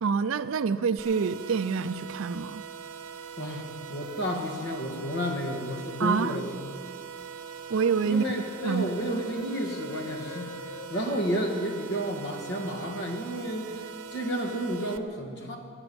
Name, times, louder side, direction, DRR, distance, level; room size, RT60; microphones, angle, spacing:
voice 1, 0.0-2.6 6.0-6.4 7.7-8.2 8.6-8.9 11.1-11.2, right 5 dB, 60° right, 10 dB, 0.4 m, -27 dB
sound 1, 1.0-15.0, right 7 dB, 85° right, 0.8 m, -42 dB
voice 2, 3.4-6.5 8.0-10.5 10.9-15.6, equal, 50° left, 2 dB, 1.9 m, -31 dB
sound 2, 4.9-5.1 8.1-11.6, left 5 dB, 80° left, 0.7 m, -45 dB
18.0 x 9.7 x 7.0 m, 2.2 s
head